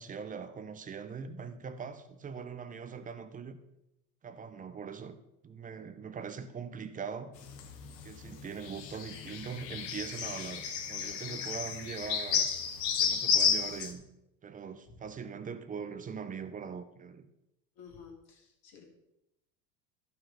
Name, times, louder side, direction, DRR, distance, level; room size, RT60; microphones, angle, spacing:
voice 1, 0.0-3.6 4.2-5.2 5.4-7.4 8.0-12.5 13.0-14.0 14.4-17.2, right 6 dB, 15° right, 0.6 m, -41 dB
sound 1, 7.4-13.9, left 7 dB, 80° left, 1.5 m, -32 dB
voice 2, 11.0-11.4 17.8-18.8, left 6 dB, 50° left, 2.8 m, -52 dB
11.5 x 5.8 x 5.6 m
supercardioid pair, 110°, 49 cm